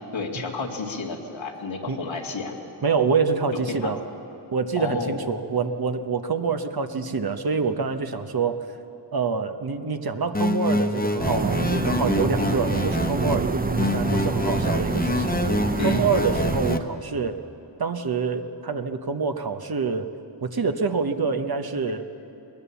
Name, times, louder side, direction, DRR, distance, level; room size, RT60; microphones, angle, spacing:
voice 1, 0.1-2.5 3.7-3.9 4.7-5.3 15.8-16.1, left 3 dB, 85° left, 1 dB, 2.1 m, -31 dB
voice 2, 2.8-4.0 4.5-8.7 9.1-15.5 15.8-17.4 17.8-20.1 20.4-22.0, right 5 dB, 55° right, 7 dB, 1.2 m, -26 dB
sound 1, 10.3-13.4 13.8-16.8, left 2 dB, 20° left, 1.2 m, -26 dB
sound 2, 11.2-16.8, right 3 dB, 20° right, 0.7 m, -26 dB
20.0 x 19.0 x 7.1 m, 2.9 s
cardioid pair, 50°, 45 cm